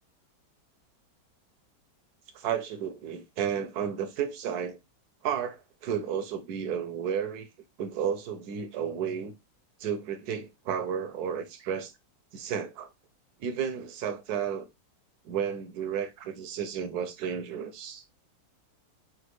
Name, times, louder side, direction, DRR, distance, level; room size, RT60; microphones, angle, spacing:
voice 1, 2.3-4.8 5.2-7.5 7.8-9.3 9.8-11.9 12.3-12.9 13.4-14.7 15.2-18.0, right 8 dB, 70° right, 1.0 m, -32 dB
5.9 x 2.4 x 3.1 m
omnidirectional pair, 2.0 m